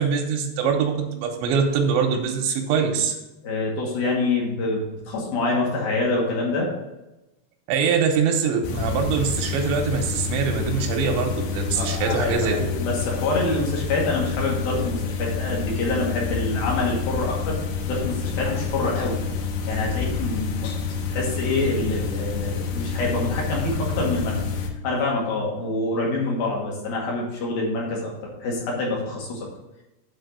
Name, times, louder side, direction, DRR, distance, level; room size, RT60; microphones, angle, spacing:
voice 1, 0.0-3.2 7.7-12.6, right 6 dB, 90° right, 2 dB, 3.2 m, -23 dB
voice 2, 3.4-6.7 11.8-17.6 17.9-19.2 19.7-20.7 21.1-24.4 24.8-28.1 28.4-29.5, left 2 dB, 60° left, -3 dB, 3.7 m, -26 dB
sound 1, 8.6-24.7, left 5 dB, 75° left, 3.1 m, -28 dB
9.1 x 4.2 x 6.6 m, 0.98 s
omnidirectional pair, 5.1 m